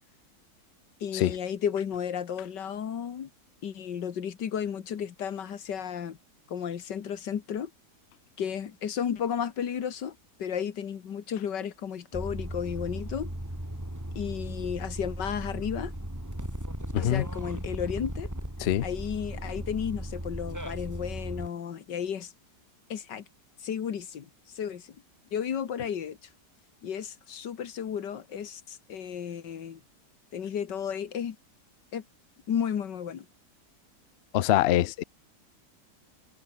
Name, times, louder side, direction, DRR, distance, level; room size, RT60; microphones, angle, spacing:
voice 1, 1.0-3.3 3.6-6.2 6.5-7.7 8.4-13.3 14.2-15.9 17.0-18.3 18.8-22.3 22.9-23.3 23.6-24.3 24.6-25.0 25.3-26.2 26.8-29.8 30.3-31.4 31.9-32.0 32.5-33.3, left 8 dB, 85° left, 2.1 m, -33 dB
sound 1, 12.1-21.5, right 1 dB, 10° right, 4.1 m, -36 dB
voice 2, 16.9-17.2 18.6-18.9 34.3-35.0, left 13 dB, 70° left, 0.6 m, -24 dB
omnidirectional pair, 1.8 m